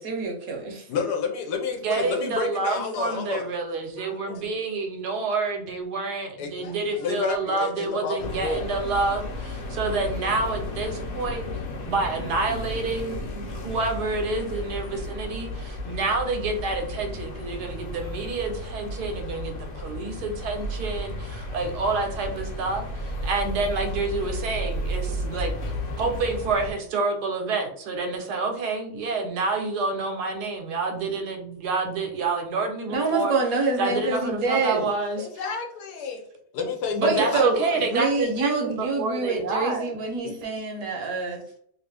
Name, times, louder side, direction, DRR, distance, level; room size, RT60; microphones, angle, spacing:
voice 1, 0.0-0.9 32.9-34.9 37.0-41.4, right 3 dB, 70° right, 2 dB, 1.1 m, -26 dB
voice 2, 0.9-3.5 4.0-4.4 6.4-8.1 8.4-8.6 35.2-36.2 36.5-38.1 40.2-40.3, left 5 dB, 85° left, 2 dB, 1.2 m, -30 dB
voice 3, 1.8-11.5 11.9-25.5 26.0-33.4 33.8-35.3 36.9-40.0, right 3 dB, 85° right, 4 dB, 1.3 m, -28 dB
sound 1, 8.2-26.7, left 1 dB, 50° left, 0.7 m, -33 dB
3.1 x 2.5 x 3.3 m, 0.65 s
omnidirectional pair, 1.7 m